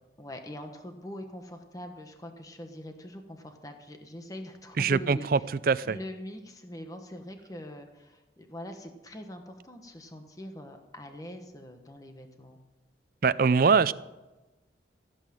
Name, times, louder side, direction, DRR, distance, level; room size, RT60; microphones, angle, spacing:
voice 1, 0.2-5.5 5.8-12.6, left 1 dB, 20° left, 5 dB, 1.2 m, -43 dB
voice 2, 4.8-6.0 13.2-13.9, right 5 dB, 50° right, 16 dB, 0.4 m, -23 dB
15.5 x 8.3 x 7.5 m, 1.1 s
head